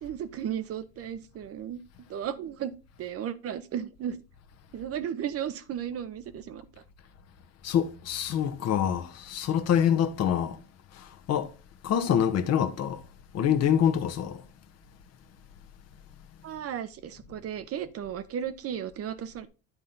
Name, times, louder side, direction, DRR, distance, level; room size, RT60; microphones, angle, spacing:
voice 1, 0.0-1.8 2.1-2.7 3.0-4.2 4.7-6.6 16.4-19.5, right 9 dB, 45° right, 0.8 m, -34 dB
voice 2, 7.6-10.6 10.9-11.5 11.8-13.0 13.3-14.4, left 9 dB, 50° left, 1.0 m, -26 dB
9.6 x 4.2 x 3.9 m
supercardioid pair, 90°, 33 cm